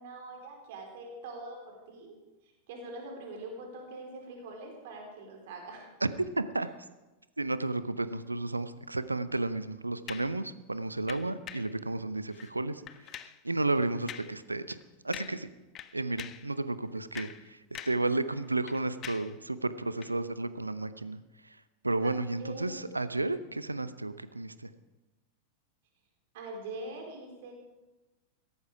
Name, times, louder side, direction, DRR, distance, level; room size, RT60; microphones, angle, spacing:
voice 1, 0.0-2.1 2.4-5.9 22.0-22.9 26.3-27.5, right 2 dB, 50° right, 1 dB, 4.0 m, -43 dB
voice 2, 6.4-6.7 7.4-12.9 13.2-14.8 15.0-15.5 15.9-21.6 21.8-24.7, right 2 dB, 80° right, 14 dB, 0.7 m, -32 dB
sound 1, 10.1-10.4 11.1-11.8 12.3-12.5 12.9-13.4 14.1-14.4 14.7-14.8 15.1-15.5 15.8-16.5 17.0-18.1 18.4-19.4 20.0-20.1, left 10 dB, 30° left, 0.6 m, -45 dB
17.0 x 14.0 x 4.8 m, 1.1 s
figure-of-eight pair, 90°, 0 cm